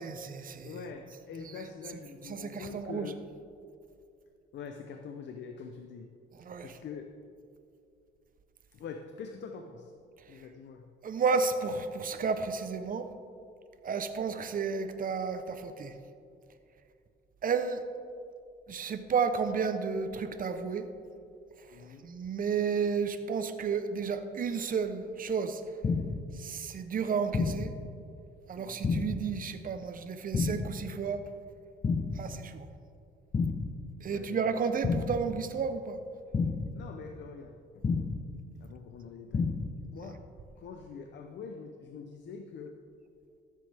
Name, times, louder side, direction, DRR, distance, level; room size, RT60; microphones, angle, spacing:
voice 1, 0.0-0.8 1.3-3.1 6.4-6.8 11.0-13.1 13.8-15.9 17.4-17.8 18.7-20.9 22.0-25.6 26.4-27.7 28.5-31.2 32.2-32.7 34.0-36.0 40.0-40.1, right 5 dB, 45° right, 9 dB, 0.7 m, -32 dB
voice 2, 0.6-3.3 4.5-6.1 6.6-7.1 8.7-9.9 10.3-10.9 21.7-22.1 28.6-28.8 34.1-34.5 36.7-38.0 38.6-39.5 39.9-40.3 40.6-42.8, left 5 dB, 65° left, 5 dB, 0.7 m, -44 dB
sound 1, 25.8-26.3 27.3-27.8 28.8-29.3 30.3-30.8 31.8-32.3 33.3-33.8 34.8-35.3 36.3-36.8 37.8-38.3 39.3-39.8, left 4 dB, 30° left, 0.6 m, -30 dB
13.5 x 7.6 x 3.4 m, 2.4 s
cardioid pair, 90°, 20 cm